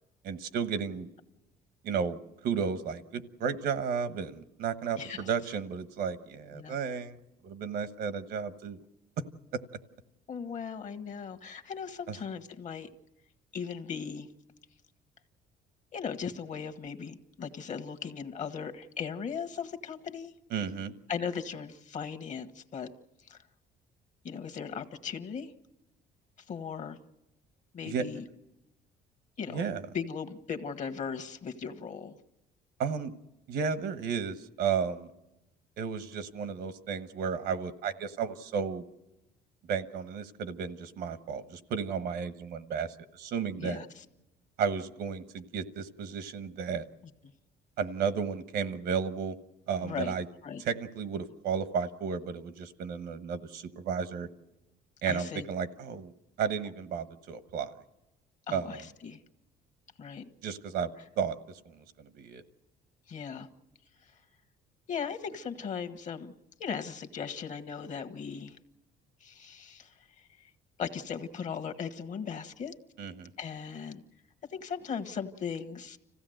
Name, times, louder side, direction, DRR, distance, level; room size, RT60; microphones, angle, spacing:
voice 1, 0.2-1.1 1.8-2.2 2.4-7.2 7.4-8.8 9.5-9.6 12.1-12.2 20.5-20.9 27.8-28.1 29.5-29.8 32.8-33.1 33.5-35.1 35.8-38.8 39.7-42.9 43.1-43.8 44.6-46.8 47.8-49.4 49.7-50.3 50.6-54.3 55.0-56.1 56.4-57.7 58.5-58.8 60.4-60.9 61.2-61.4 61.6-62.4 73.0-73.3, right 6 dB, 75° right, 11 dB, 1.2 m, -33 dB
voice 2, 5.0-5.3 6.5-6.8 10.3-12.9 13.5-14.3 15.9-20.3 21.1-22.9 23.3-23.4 24.2-25.5 26.5-27.0 27.7-28.2 29.4-29.6 29.9-32.2 43.6-44.0 49.8-50.1 50.4-50.6 55.1-55.5 58.5-59.2 60.0-60.3 63.1-63.5 64.9-66.3 66.6-68.6 69.2-70.5 70.8-72.7 73.4-74.0 74.5-76.0, left 6 dB, 45° left, 8 dB, 1.3 m, -38 dB
26.0 x 15.5 x 7.8 m, 0.97 s
cardioid pair, 110°, 17 cm